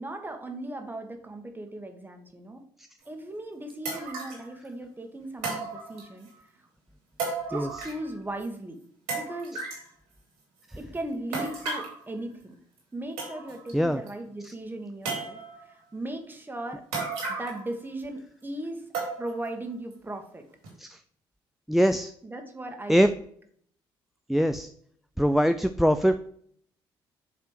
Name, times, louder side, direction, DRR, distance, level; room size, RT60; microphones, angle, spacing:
voice 1, 0.0-2.6 3.0-6.3 7.5-8.8 9.1-9.6 10.8-12.5 12.9-16.8 17.3-18.8 19.2-20.5 22.2-23.0, right 1 dB, 20° right, 4 dB, 1.5 m, -37 dB
sound 1, 3.0-3.1 3.8-4.5 5.4-6.3 7.2-8.1 8.4-8.5 9.1-9.9 11.3-12.0 12.8-12.9 13.2-13.7 14.1-14.2 15.0-15.6 16.9-17.7 18.0-18.1 18.9-19.5 19.9-20.0 20.6-20.7, right 3 dB, 85° right, 2.9 m, -34 dB
voice 2, 21.7-22.1 22.9-23.1 24.3-24.7 25.2-26.2, equal, ahead, 9 dB, 0.4 m, -22 dB
7.8 x 3.3 x 4.6 m, 0.63 s
hypercardioid pair, 55°, 11 cm